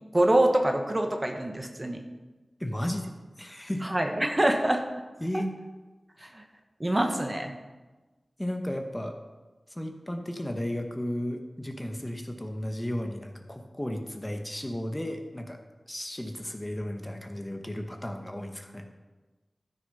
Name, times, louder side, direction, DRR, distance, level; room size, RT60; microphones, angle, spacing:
voice 1, 0.1-2.0 3.8-4.8 6.3-6.4 6.8-7.5, right 1 dB, 30° right, 4 dB, 1.3 m, -25 dB
voice 2, 2.6-3.8 5.2-5.5 6.2-6.3 8.4-9.1 9.7-15.6 15.9-18.9, left 1 dB, 20° left, 4 dB, 1.2 m, -34 dB
12.5 x 6.4 x 5.6 m, 1.2 s
wide cardioid pair, 50°, 0 cm